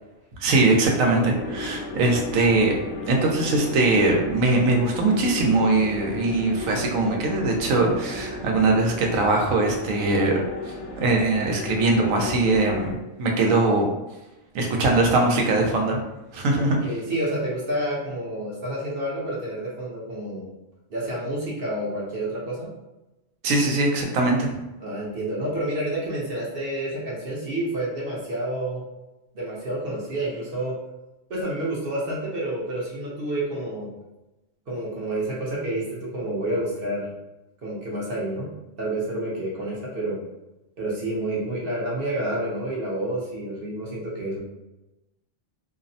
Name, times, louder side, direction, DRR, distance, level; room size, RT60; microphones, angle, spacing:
voice 1, 0.4-2.7 3.1-10.4 10.7-12.9 13.2-13.9 14.5-16.0 16.3-16.8 23.4-24.6, right 2 dB, 90° right, 1 dB, 1.0 m, -21 dB
sound 1, 1.2-12.9, left 2 dB, 75° left, 0.4 m, -35 dB
voice 2, 16.5-20.5 20.9-22.7 24.8-28.8 29.3-30.8 31.3-33.9 34.7-37.1 37.6-38.5 38.8-40.2 40.8-44.4, right 1 dB, 55° right, -5 dB, 0.8 m, -29 dB
2.6 x 2.0 x 2.6 m, 0.99 s
omnidirectional pair, 1.3 m